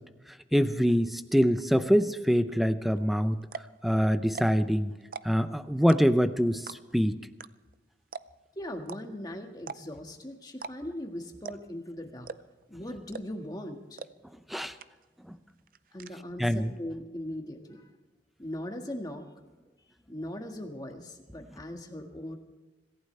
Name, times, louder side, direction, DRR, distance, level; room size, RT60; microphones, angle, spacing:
voice 1, 0.5-3.4 3.8-4.9 5.2-7.2 14.5-14.7 15.3-15.4 16.4-16.7, equal, ahead, 10 dB, 0.6 m, -25 dB
sound 1, 3.0-3.1 3.4-3.8 4.2-4.7 5.0-5.5 5.9-6.3 6.7-7.0 7.4-7.5 7.7-7.8 8.1-8.5 8.9-9.0 9.6-10.0 10.5-10.7 11.0-11.1 11.4-11.8 12.2-12.6 13.1-13.5 14.0-14.1 14.4-14.5 14.8-15.2 15.5-16.1, right 5 dB, 50° right, 0.5 m, -40 dB
voice 2, 8.6-12.3 12.7-14.0 15.9-17.9 18.4-19.2 20.1-22.4, left 1 dB, 20° left, 3 dB, 1.7 m, -39 dB
26.0 x 15.0 x 3.3 m, 1.2 s
head